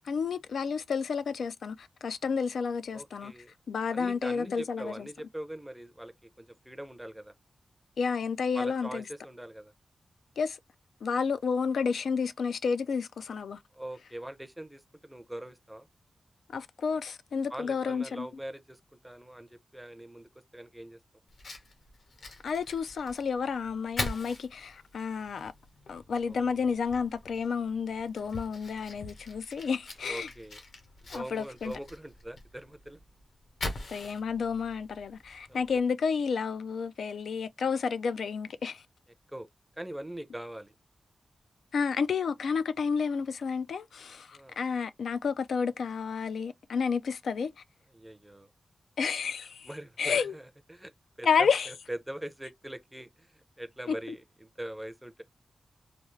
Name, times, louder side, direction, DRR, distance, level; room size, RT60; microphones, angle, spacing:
voice 1, 0.0-3.3 3.7-5.1 8.0-9.0 10.4-10.6 11.0-13.6 16.5-18.3 22.4-25.5 25.9-30.3 31.1-31.7 33.9-38.8 41.7-47.5 49.0-49.7 50.0-50.3 51.2-51.7 53.9-54.2, left 5 dB, 85° left, 0.3 m, -31 dB
voice 2, 2.9-3.5 3.9-7.3 8.5-9.7 13.7-15.9 17.5-21.0 26.5-26.6 30.0-30.6 31.1-33.0 35.5-35.8 39.3-39.5 39.8-40.7 44.3-44.6 47.9-48.5 49.6-50.9 51.2-55.2, right 1 dB, 5° right, 0.5 m, -42 dB
Fire, 21.3-35.9, left 2 dB, 60° left, 0.9 m, -43 dB
3.3 x 2.3 x 3.0 m
wide cardioid pair, 150°, 0 cm